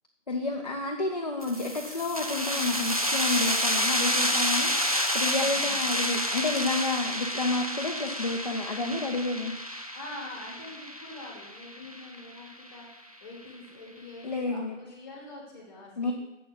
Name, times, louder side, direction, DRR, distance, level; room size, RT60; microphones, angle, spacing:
voice 1, 0.3-9.5 14.2-14.8 16.0-16.1, left 2 dB, 35° left, 1 dB, 0.6 m, -30 dB
sound 1, 1.4-12.7, equal, 30° right, 0.4 m, -29 dB
voice 2, 5.4-6.0 9.9-16.1, left 2 dB, 15° left, -1 dB, 1.5 m, -45 dB
7.3 x 4.5 x 6.6 m, 0.98 s
figure-of-eight pair, 155°, 36 cm